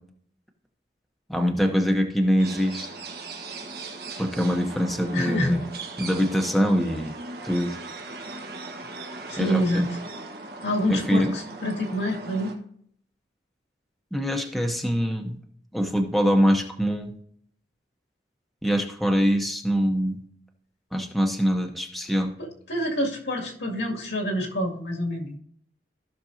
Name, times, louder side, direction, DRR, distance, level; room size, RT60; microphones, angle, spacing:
voice 1, 1.3-2.9 4.2-5.6 6.0-7.2 7.4-7.8 9.4-9.8 10.9-11.3 14.1-15.4 15.7-17.1 18.6-20.2 20.9-22.3, equal, ahead, 3 dB, 0.8 m, -23 dB
sound 1, 2.4-12.5, right 3 dB, 60° right, 1.3 m, -39 dB
voice 2, 5.1-5.6 9.3-9.9 10.6-12.5 22.4-25.4, equal, 85° left, -1 dB, 2.1 m, -27 dB
15.0 x 6.1 x 2.7 m, 0.64 s
head